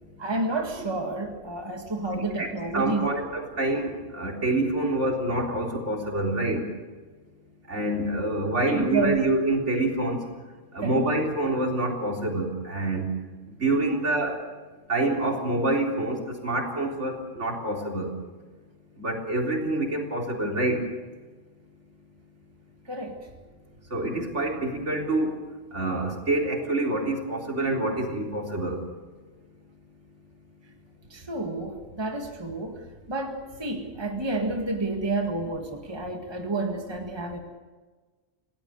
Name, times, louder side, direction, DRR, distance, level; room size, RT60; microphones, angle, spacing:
voice 1, 0.2-3.1 8.7-9.2 10.8-11.0 22.9-23.2 31.1-37.4, right 2 dB, 20° right, 3 dB, 2.0 m, -30 dB
voice 2, 2.1-6.6 7.7-10.2 10.7-13.1 13.6-14.4 14.9-18.1 19.0-20.8 23.9-25.3 25.7-28.8, right 2 dB, 65° right, 0 dB, 4.2 m, -26 dB
28.0 x 18.0 x 6.6 m, 1.4 s
omnidirectional pair, 1.3 m